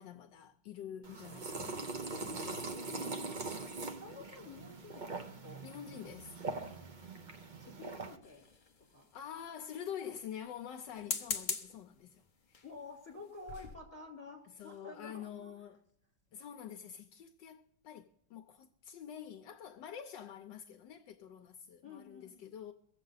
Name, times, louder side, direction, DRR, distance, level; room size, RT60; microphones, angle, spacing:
voice 1, 0.0-1.8 2.1-3.2 5.6-6.4 9.1-12.6 14.5-15.8 16.3-22.7, left 9 dB, 75° left, 1.3 m, -47 dB
sound 1, 1.0-8.2, right 3 dB, 35° right, 0.7 m, -42 dB
sound 2, 1.1-5.4, right 1 dB, 80° right, 4.2 m, -62 dB
voice 2, 4.0-5.6 7.6-8.5 8.9-9.1 12.6-15.5 21.8-22.4, left 3 dB, 15° left, 4.0 m, -50 dB
cooker being turned on beans sizzling, 8.2-9.0 10.9-11.8 12.5-12.8 13.2-13.3 13.5-13.8, left 5 dB, 40° left, 0.7 m, -39 dB
23.5 x 7.9 x 4.0 m
omnidirectional pair, 2.0 m